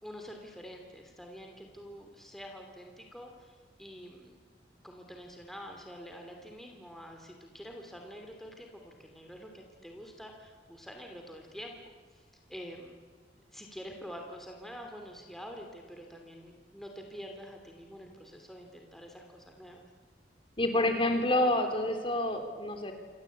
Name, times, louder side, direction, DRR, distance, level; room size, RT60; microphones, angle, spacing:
voice 1, 0.0-4.4 4.8-13.0 13.5-19.8, equal, ahead, 2 dB, 2.8 m, -47 dB
voice 2, 20.6-22.9, left 1 dB, 30° left, 6 dB, 3.3 m, -28 dB
27.5 x 25.5 x 8.5 m, 1.5 s
head